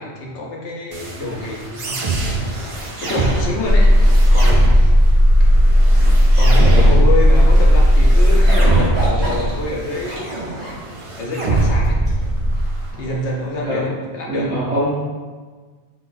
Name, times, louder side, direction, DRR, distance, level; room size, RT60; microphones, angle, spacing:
voice 1, 0.0-2.1 3.0-3.9 4.3-4.9 6.3-10.4 11.2-12.0 13.0-14.5, left 2 dB, 80° left, -1 dB, 1.1 m, -27 dB
sound 1, 0.9-12.9, right 2 dB, 50° right, 0.4 m, -23 dB
Zipper (clothing), 1.1-13.6, equal, 20° right, 1.2 m, -35 dB
sound 2, 3.6-8.8, equal, 45° left, 0.5 m, -12 dB
voice 2, 14.3-14.9, equal, 75° right, -11 dB, 1.9 m, -23 dB
3.8 x 3.8 x 2.6 m, 1.4 s
omnidirectional pair, 1.2 m